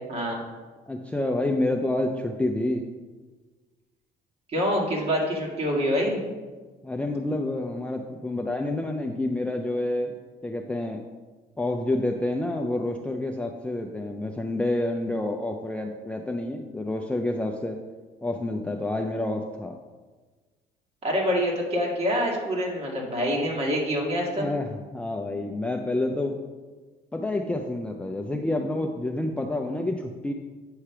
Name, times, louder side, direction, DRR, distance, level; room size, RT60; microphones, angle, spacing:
voice 1, 0.1-0.4 4.5-6.2 21.0-24.5, equal, 35° right, -1 dB, 2.0 m, -26 dB
voice 2, 0.9-2.8 6.8-10.1 10.4-11.0 11.6-17.8 18.2-19.7 24.3-26.4 27.1-30.3, left 2 dB, 5° left, 2 dB, 0.4 m, -28 dB
8.6 x 3.2 x 5.7 m, 1.3 s
cardioid pair, 110°, 17 cm